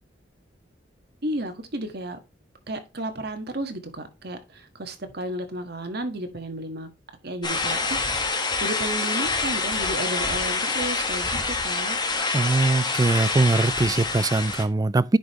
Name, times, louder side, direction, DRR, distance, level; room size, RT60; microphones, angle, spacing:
voice 1, 1.2-2.2 2.7-6.9 7.2-12.0, right 1 dB, 60° right, 1.5 m, -33 dB
sound 1, 7.4-14.6, left 3 dB, 25° left, 1.4 m, -26 dB
voice 2, 12.3-15.2, right 2 dB, 20° right, 0.3 m, -21 dB
10.0 x 5.3 x 3.0 m
head